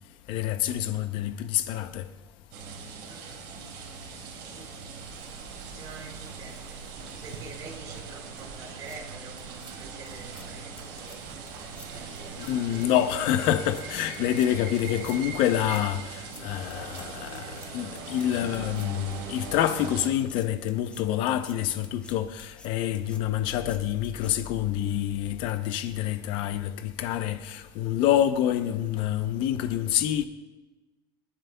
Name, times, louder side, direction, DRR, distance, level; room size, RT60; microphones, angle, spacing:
voice 1, 0.3-2.0 12.4-30.3, left 11 dB, 50° left, 0.7 m, -27 dB
sound 1, 2.5-20.1, right 5 dB, 60° right, 4.7 m, -41 dB
voice 2, 3.1-3.6 4.3-4.8 5.7-6.6 7.0-9.4 9.8-11.2, right 4 dB, 35° right, 4.3 m, -46 dB
Livestock farm animals working animals, 5.0-14.1, right 6 dB, 80° right, 3.6 m, -48 dB
sound 2, 8.6-9.0 9.4-9.7 10.1-10.4 10.8-11.2 11.5-11.9 12.2-12.5 12.8-13.2 13.4-13.8 14.1-14.5 14.8-15.1 15.4-15.8 16.1-16.4 16.7-17.0 17.3-17.7 18.0-18.3 18.5-18.9 19.4-19.8 20.0-21.5 21.8-22.1 22.4-22.7 22.9-23.2 23.5-23.8 24.0-24.3, left 2 dB, 10° left, 1.1 m, -50 dB
25.0 x 11.5 x 2.2 m
cardioid pair, 170°, 11 cm